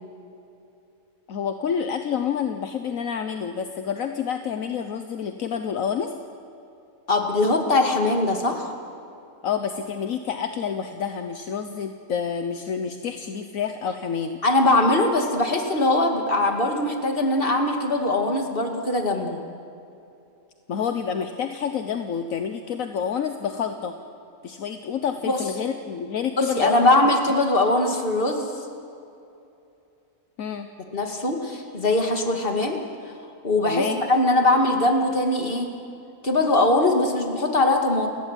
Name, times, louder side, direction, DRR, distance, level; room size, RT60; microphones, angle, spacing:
voice 1, 1.3-6.1 9.4-14.4 20.7-23.9 24.4-27.1 30.4-30.7 33.6-34.0, left 7 dB, 70° left, 7 dB, 1.4 m, -28 dB
voice 2, 7.1-8.7 14.4-19.4 25.3-25.4 26.4-28.5 30.9-32.8 33.4-35.7 36.2-38.1, left 2 dB, 40° left, 3 dB, 2.6 m, -21 dB
29.5 x 14.5 x 9.1 m, 2.7 s
omnidirectional pair, 1.5 m